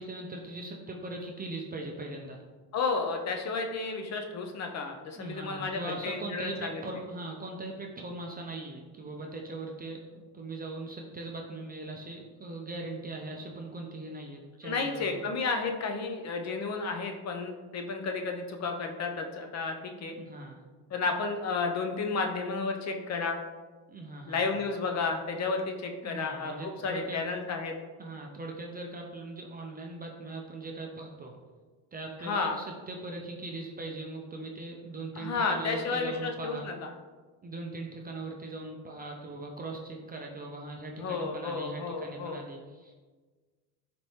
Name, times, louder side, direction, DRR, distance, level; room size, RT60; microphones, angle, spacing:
voice 1, 0.0-2.4 5.2-15.1 20.1-20.6 23.9-24.5 26.0-27.2 28.0-31.3 31.9-36.7 37.4-42.9, right 2 dB, 25° right, 0 dB, 0.4 m, -40 dB
voice 2, 2.7-6.8 14.6-20.1 20.9-23.4 24.3-27.8 32.2-32.6 35.2-36.9 41.0-42.4, left 4 dB, 40° left, 4 dB, 0.5 m, -32 dB
4.2 x 3.2 x 2.7 m, 1.4 s
supercardioid pair, 90°, 42 cm